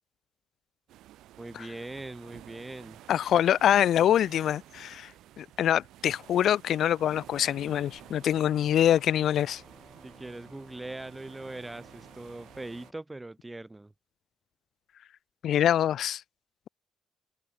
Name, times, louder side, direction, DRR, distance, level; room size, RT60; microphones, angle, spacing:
sound 1, 0.9-12.9, right 14 dB, 85° right, 4.6 m, -52 dB
voice 1, 1.4-3.0 10.0-13.9, right 2 dB, 15° right, 7.3 m, -41 dB
voice 2, 3.1-5.1 5.4-9.6 15.4-16.2, left 10 dB, 70° left, 0.5 m, -24 dB
sound 2, 7.2-12.9, left 3 dB, 20° left, 5.3 m, -56 dB
cardioid pair, 90°, 0 cm